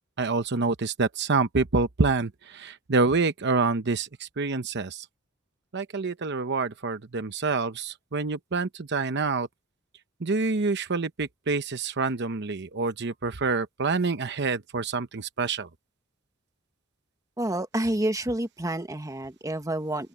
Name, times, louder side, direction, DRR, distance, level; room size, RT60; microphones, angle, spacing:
voice 1, 0.2-5.0 5.7-9.5 10.2-15.7, right 4 dB, 55° right, 0.9 m, -27 dB
voice 2, 17.4-20.1, right 1 dB, 15° right, 1.3 m, -29 dB
open air
head